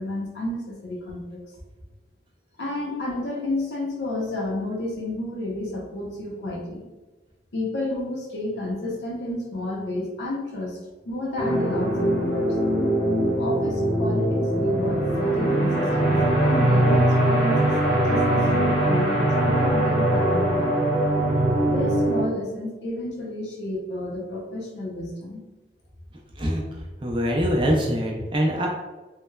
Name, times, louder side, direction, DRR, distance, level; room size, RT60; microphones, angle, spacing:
voice 1, 0.0-1.4 2.6-6.9 7.5-10.8 11.1-12.6 13.4-20.8 21.7-25.4, left 1 dB, 80° left, -2 dB, 0.7 m, -31 dB
sound 1, 11.4-22.2, right 1 dB, 30° left, 1.0 m, -21 dB
voice 2, 27.0-28.7, equal, 30° right, -1 dB, 0.4 m, -23 dB
3.1 x 2.1 x 2.2 m, 1.1 s
head